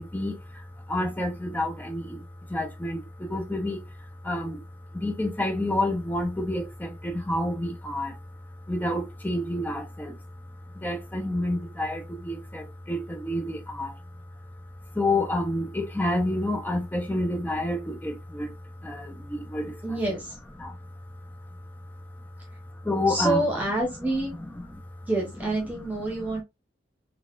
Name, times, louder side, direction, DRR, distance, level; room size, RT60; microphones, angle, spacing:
voice 1, 0.0-3.8 4.2-4.6 4.9-8.2 8.7-10.2 10.7-14.0 14.9-18.6 18.8-19.8 20.6-20.8 22.8-23.4, left 1 dB, 10° left, 0.5 m, -29 dB
voice 2, 19.8-20.4 23.1-24.3 25.0-26.4, right 2 dB, 10° right, 0.9 m, -27 dB
3.9 x 2.3 x 2.4 m
head